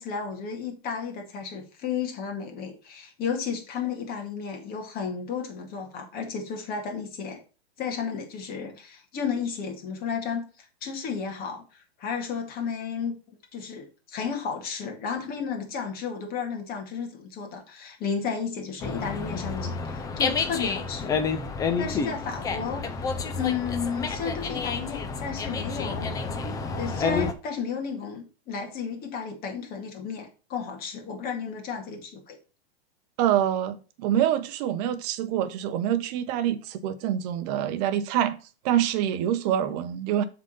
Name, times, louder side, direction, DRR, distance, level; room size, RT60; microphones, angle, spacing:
voice 1, 0.0-7.4 7.8-13.1 13.5-21.2 21.8-22.9 23.3-26.1 26.4-32.4, left 6 dB, 30° left, 2.1 m, -33 dB
Dog, 18.8-27.3, left 5 dB, 10° left, 0.5 m, -29 dB
voice 2, 33.2-38.4 38.6-40.2, right 10 dB, 40° right, 0.9 m, -26 dB
7.2 x 4.0 x 5.5 m
hypercardioid pair, 140°, 32 cm